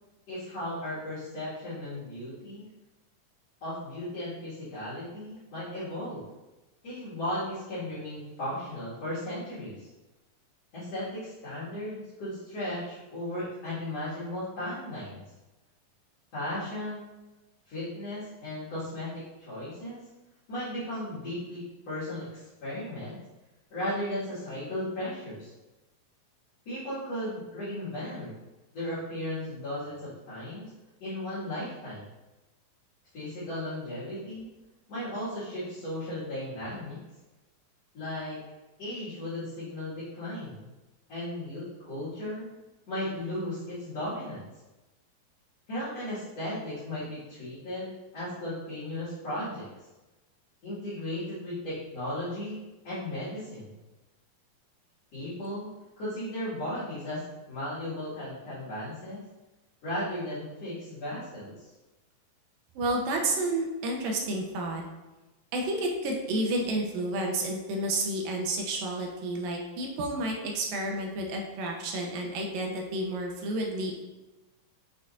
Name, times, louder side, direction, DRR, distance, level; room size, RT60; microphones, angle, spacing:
voice 1, 0.3-2.7 3.6-6.2 6.8-9.9 10.7-15.2 16.3-17.1 17.7-20.0 20.5-23.2 23.7-25.5 26.7-28.3 28.7-30.7 31.0-32.1 33.1-34.5 34.9-37.0 37.9-38.4 38.8-40.7 41.1-42.5 42.9-44.5 45.7-49.7 50.6-53.7 55.1-55.7 56.0-57.2 57.5-59.2 59.8-61.7, left 1 dB, 50° left, -13 dB, 3.3 m, -36 dB
voice 2, 62.8-64.8 65.5-73.9, right 1 dB, 90° right, 1 dB, 2.7 m, -30 dB
6.4 x 6.3 x 2.8 m, 1.1 s
omnidirectional pair, 4.0 m